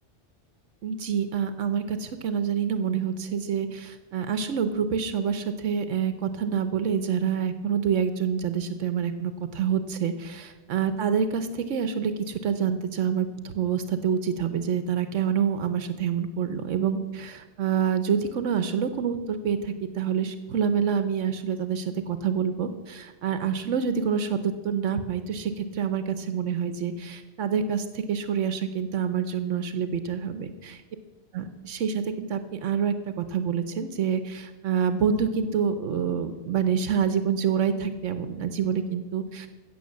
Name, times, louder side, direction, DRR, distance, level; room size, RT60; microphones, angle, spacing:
voice 1, 0.8-30.8 31.3-39.5, right 7 dB, 80° right, 10 dB, 1.1 m, -27 dB
16.0 x 6.6 x 7.5 m, 1.2 s
omnidirectional pair, 1.3 m